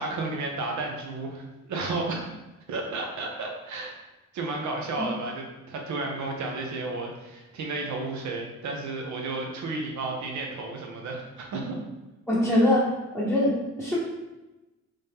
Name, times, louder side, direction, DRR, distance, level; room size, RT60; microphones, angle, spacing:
voice 1, 0.0-2.2 2.7-3.9 4.3-11.8 12.5-12.7, right 3 dB, 70° right, 1 dB, 0.9 m, -32 dB
voice 2, 12.3-14.0, left 1 dB, ahead, -9 dB, 1.0 m, -23 dB
3.4 x 2.8 x 3.6 m, 1.1 s
cardioid pair, 90°, 30 cm